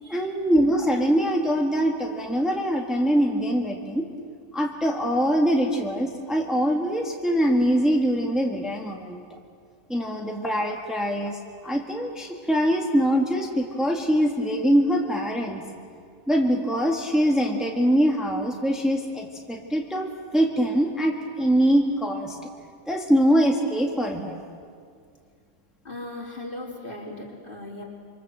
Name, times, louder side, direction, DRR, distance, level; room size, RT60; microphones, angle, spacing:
voice 1, 0.1-4.1 4.5-9.2 9.9-15.6 16.3-22.4 22.9-24.4, equal, ahead, 0 dB, 1.8 m, -23 dB
voice 2, 25.8-27.8, left 2 dB, 45° left, -2 dB, 4.4 m, -38 dB
26.5 x 25.0 x 7.6 m, 2.2 s
omnidirectional pair, 1.3 m